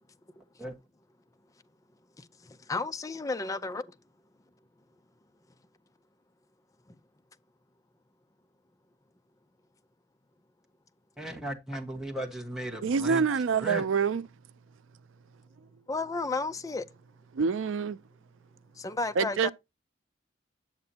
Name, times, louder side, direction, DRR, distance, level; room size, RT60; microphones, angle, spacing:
voice 1, 2.2-4.0 15.9-16.9 18.8-19.5, left 3 dB, 15° left, 0.4 m, -33 dB
voice 2, 11.2-13.2 13.6-13.8, right 1 dB, 5° right, 1.3 m, -36 dB
voice 3, 12.8-14.2 17.3-18.0 19.2-19.5, right 5 dB, 85° right, 0.4 m, -26 dB
8.8 x 6.9 x 2.8 m
head